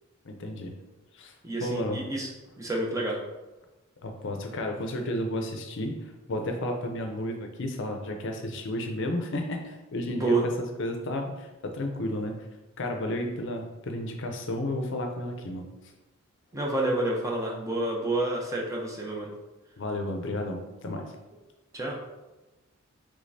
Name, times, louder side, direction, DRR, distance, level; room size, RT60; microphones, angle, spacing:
voice 1, 0.2-0.8 1.2-1.3 1.6-2.0 4.0-6.0 6.3-12.4 12.8-15.6 19.8-21.1, left 1 dB, 60° left, 4 dB, 0.6 m, -32 dB
voice 2, 1.4-2.3 2.6-3.2 10.1-10.4 16.5-19.3 21.7-22.0, right 2 dB, 15° right, -2 dB, 0.6 m, -28 dB
5.1 x 3.4 x 2.7 m, 1.1 s
head